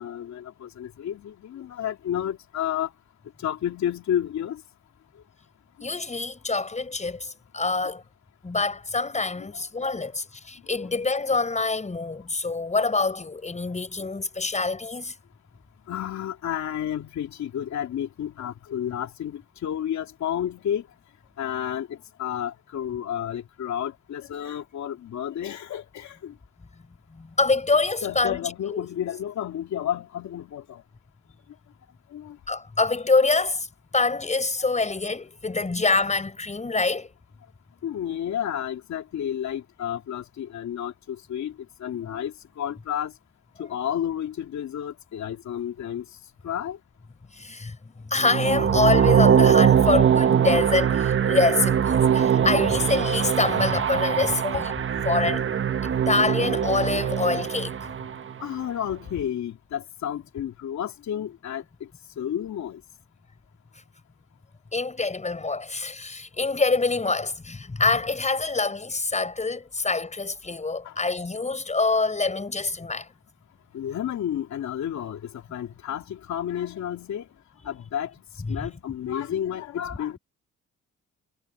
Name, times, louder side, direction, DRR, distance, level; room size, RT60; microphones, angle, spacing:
voice 1, 0.0-2.9 3.4-4.6 9.5-9.6 15.9-20.8 21.4-26.3 28.0-30.8 32.1-32.4 37.8-41.5 41.8-43.1 43.6-46.0 46.4-46.8 58.4-61.6 62.2-62.8 70.8-70.9 73.7-77.3 77.6-78.1 78.5-80.2, left 10 dB, 65° left, 2.8 m, -31 dB
voice 2, 5.8-8.0 8.4-15.1 27.1-28.9 32.5-33.7 33.9-37.1 47.3-54.7 55.0-55.4 55.8-57.9 64.7-73.1 78.5-78.7, left 3 dB, 25° left, 5.7 m, -25 dB
sound 1, 48.2-58.3, right 8 dB, 45° right, 1.1 m, -22 dB
cardioid pair, 90°, 30 cm